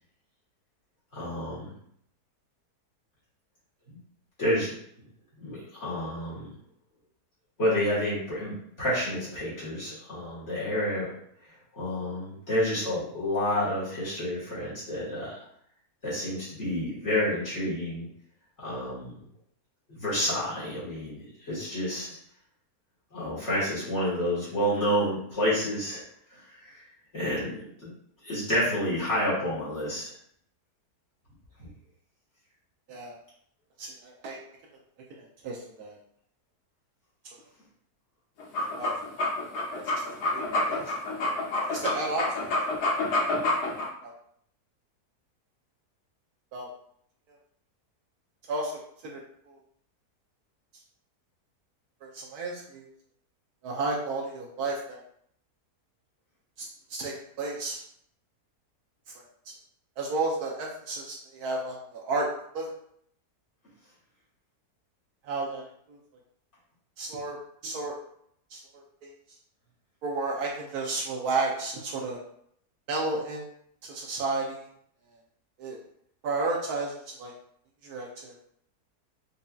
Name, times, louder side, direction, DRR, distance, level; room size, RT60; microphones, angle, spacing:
voice 1, 1.1-1.7 4.4-4.7 5.4-6.5 7.6-11.1 11.7-15.4 16.0-18.1 18.6-19.2 19.9-22.2 23.1-26.0 26.3-26.9 27.1-27.9 28.2-30.1 31.6-31.7, equal, 45° left, -10 dB, 1.8 m, -29 dB
voice 2, 33.8-34.4 35.1-36.0 38.8-38.9 39.7-40.1 40.3-40.9 41.7-42.5 44.0-44.1 46.5-46.7 48.5-49.6 52.0-52.9 53.6-55.0 56.6-57.8 59.1-59.5 60.0-62.7 65.2-66.0 67.0-67.4 67.6-68.0 68.5-69.1 70.0-72.2 72.9-73.5 73.8-74.7 75.6-75.8 76.2-77.3 77.8-78.3, right 3 dB, 75° right, -1 dB, 1.1 m, -33 dB
sound 1, 38.4-43.9, left 2 dB, 80° left, 1.4 m, -28 dB
5.3 x 2.7 x 2.3 m, 0.68 s
omnidirectional pair, 1.7 m